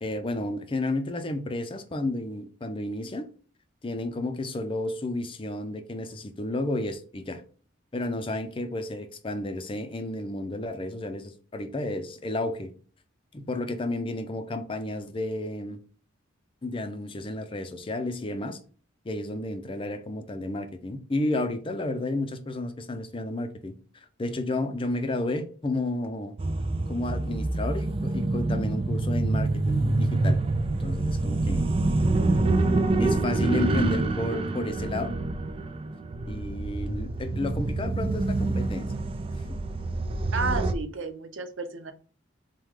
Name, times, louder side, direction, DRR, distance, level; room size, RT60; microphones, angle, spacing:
voice 1, 0.0-3.3 3.8-7.4 7.9-12.7 13.3-15.8 16.6-18.6 19.0-26.3 26.9-30.4 30.7-31.6 33.0-35.1 36.3-38.9, left 2 dB, 25° left, 0.5 m, -32 dB
sound 1, 26.4-40.7, right 2 dB, 30° right, 0.3 m, -26 dB
voice 2, 40.3-41.9, right 4 dB, 80° right, 0.7 m, -32 dB
4.7 x 2.2 x 3.6 m
head